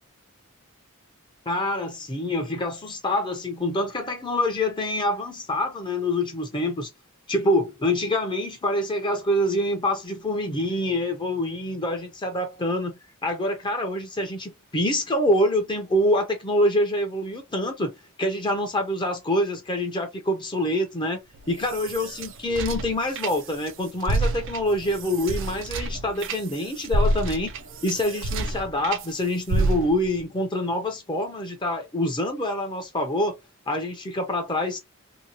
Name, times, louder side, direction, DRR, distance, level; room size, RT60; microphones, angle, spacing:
voice 1, 1.5-6.9 7.3-17.9 18.2-21.2 21.5-27.5 27.8-33.3 33.7-34.8, left 1 dB, 20° left, 0.6 m, -26 dB
sound 1, 21.4-23.7 24.0-29.1 29.5-30.2, right 2 dB, 60° right, 0.5 m, -28 dB
2.8 x 2.2 x 2.7 m
head